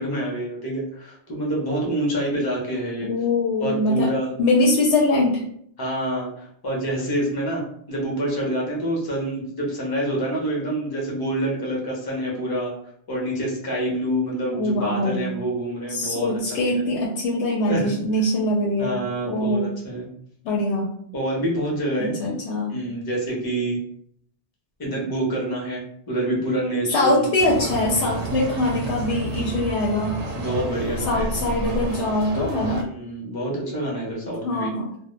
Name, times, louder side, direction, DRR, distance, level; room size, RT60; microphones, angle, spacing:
voice 1, 0.0-3.1 3.6-4.3 4.6-4.7 5.8-7.6 7.9-12.7 13.1-16.3 16.7-16.8 17.6-17.9 18.8-19.6 19.8-20.1 21.1-22.3 22.7-23.8 24.8-27.3 30.4-31.3 32.9-34.7, right 1 dB, 25° left, -3 dB, 0.6 m, -27 dB
voice 2, 3.0-5.4 14.5-15.3 15.9-19.0 19.3-19.7 20.4-21.0 22.0-22.7 26.9-30.2 31.1-32.8 34.4-34.9, left 1 dB, 85° left, -2 dB, 0.9 m, -23 dB
sound 1, 27.4-32.8, right 2 dB, 80° right, 0.9 m, -30 dB
2.1 x 2.1 x 3.1 m, 0.67 s
omnidirectional pair, 1.2 m